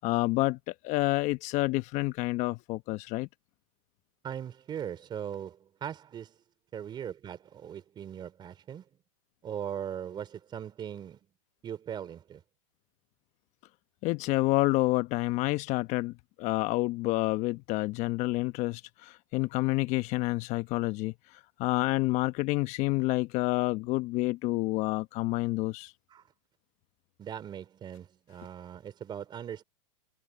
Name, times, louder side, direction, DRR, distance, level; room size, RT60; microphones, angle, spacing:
voice 1, 0.0-3.3 14.0-21.1 21.6-25.9, left 20 dB, 40° left, 1.0 m, -28 dB
voice 2, 4.2-6.4 6.7-8.9 9.4-11.2 11.6-12.4 26.1-26.2 27.2-29.6, right 9 dB, 25° right, 3.7 m, -39 dB
hypercardioid pair, 120°, 18 cm